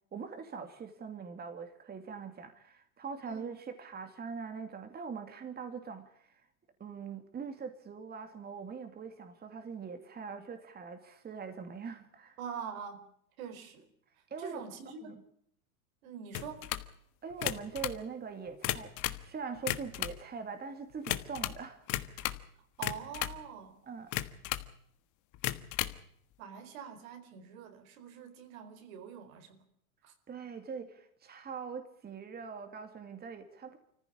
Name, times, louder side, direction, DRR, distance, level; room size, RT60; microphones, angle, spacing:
voice 1, 0.1-6.4 6.8-12.4 14.3-14.6 15.0-15.2 17.2-22.3 23.9-24.1 30.3-33.8, right 5 dB, 20° right, 2.5 m, -42 dB
voice 2, 12.4-13.1 13.4-13.9 14.4-15.1 16.0-16.7 22.8-23.9 26.4-29.6 30.0-30.1, right 7 dB, 70° right, 4.5 m, -44 dB
sound 1, 16.3-16.9 17.3-18.0 18.5-19.3 19.6-20.2 21.0-21.6 21.9-22.5 22.8-23.4 24.1-24.7 25.3-26.0, left 15 dB, 45° left, 1.4 m, -35 dB
24.5 x 15.0 x 8.5 m
supercardioid pair, 115°, 43 cm